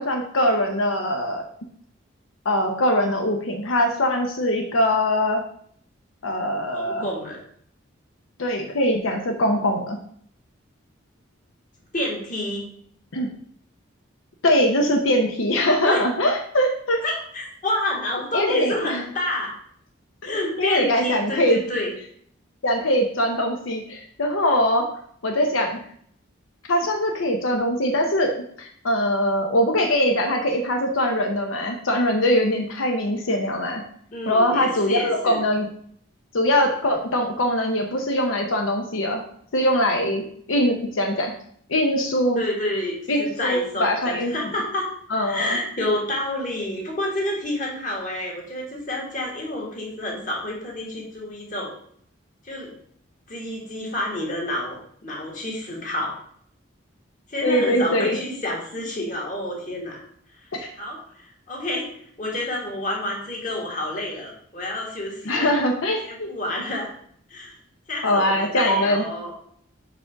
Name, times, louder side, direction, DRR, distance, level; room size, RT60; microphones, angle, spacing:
voice 1, 0.0-1.4 2.4-5.4 6.2-7.1 8.4-10.0 13.1-13.3 14.4-17.0 18.3-19.0 20.2-21.6 22.6-24.9 25.2-25.8 26.7-28.3 28.6-33.8 34.3-35.7 36.3-39.2 39.5-40.2 40.5-41.3 41.7-42.4 43.1-44.5 45.1-45.6 57.4-58.2 60.5-60.7 65.3-66.3 68.0-69.0, left 1 dB, 90° left, 2 dB, 0.8 m, -22 dB
voice 2, 6.7-7.4 11.9-12.7 15.8-16.0 17.0-19.5 20.2-21.9 34.1-35.4 42.4-44.9 45.2-51.7 52.4-52.7 53.3-56.2 57.3-60.0 60.7-61.9 62.2-65.5 66.0-66.9 67.3-67.6 67.9-69.3, left 1 dB, 40° left, -2 dB, 1.8 m, -29 dB
5.1 x 4.8 x 4.6 m, 0.62 s
head